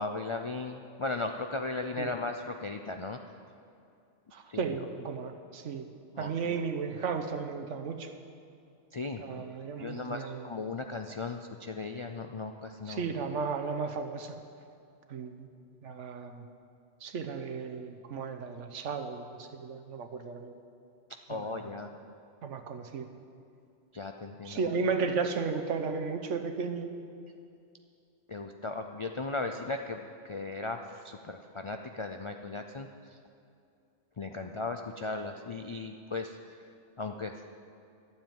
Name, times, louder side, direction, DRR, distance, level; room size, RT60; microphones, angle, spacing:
voice 1, 0.0-3.2 4.5-4.7 6.2-6.6 8.9-9.2 9.8-13.0 21.3-21.9 23.9-24.6 28.3-32.9 34.2-36.6 37.0-37.4, left 3 dB, 55° left, 5 dB, 0.3 m, -37 dB
voice 2, 4.3-5.9 6.2-8.2 9.2-10.5 12.9-14.3 15.1-15.5 15.8-16.4 17.0-20.6 21.3-21.6 22.4-23.1 24.4-27.0, right 5 dB, 80° right, 6 dB, 1.2 m, -34 dB
12.0 x 7.4 x 9.1 m, 2.6 s
omnidirectional pair, 1.3 m